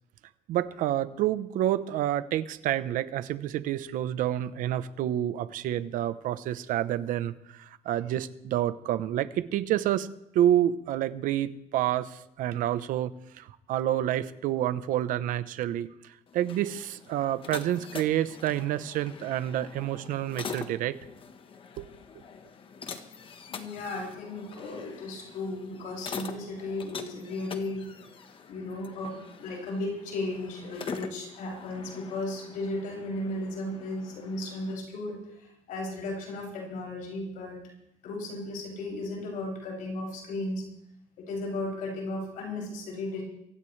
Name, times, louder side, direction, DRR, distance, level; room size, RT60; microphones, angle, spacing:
voice 1, 0.5-10.1 10.3-21.0 21.8-21.9, right 12 dB, 75° right, 13 dB, 1.0 m, -28 dB
sound 1, 16.3-34.8, left 6 dB, 40° left, 1.3 m, -44 dB
voice 2, 23.5-27.8 28.5-37.6 38.0-40.6 41.2-43.2, left 2 dB, 75° left, -1 dB, 7.2 m, -35 dB
23.5 x 16.0 x 3.4 m, 0.80 s
cardioid pair, 130°, 14 cm